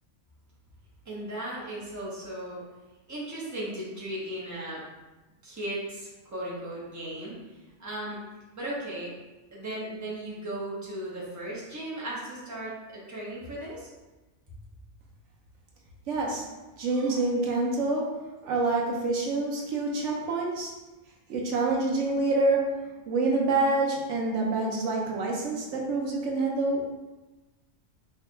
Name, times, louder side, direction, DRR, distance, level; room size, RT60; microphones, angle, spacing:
voice 1, 1.0-2.6 3.1-4.8 5.4-7.3 7.8-8.2 8.6-9.1 9.5-13.9, right 1 dB, 15° right, -7 dB, 0.8 m, -36 dB
voice 2, 16.1-16.4 16.8-18.1 18.4-20.7 21.3-22.7 23.1-26.9, right 3 dB, 90° right, -1 dB, 1.0 m, -27 dB
4.3 x 2.8 x 2.2 m, 1.1 s
omnidirectional pair, 1.2 m